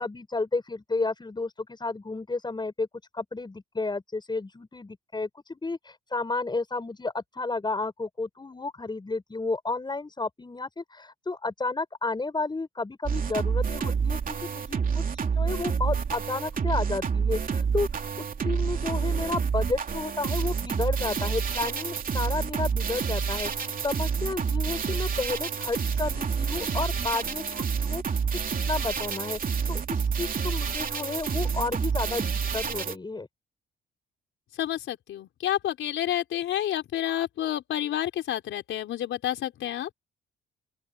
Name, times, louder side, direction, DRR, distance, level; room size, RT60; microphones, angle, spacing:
voice 1, 0.0-2.9 3.1-28.2 28.5-33.3, left 3 dB, 20° left, 7.8 m, -32 dB
sound 1, 13.0-32.9, right 6 dB, 45° right, 3.0 m, -28 dB
voice 2, 34.6-39.9, left 12 dB, 75° left, 4.8 m, -29 dB
open air
cardioid pair, 90°, 20 cm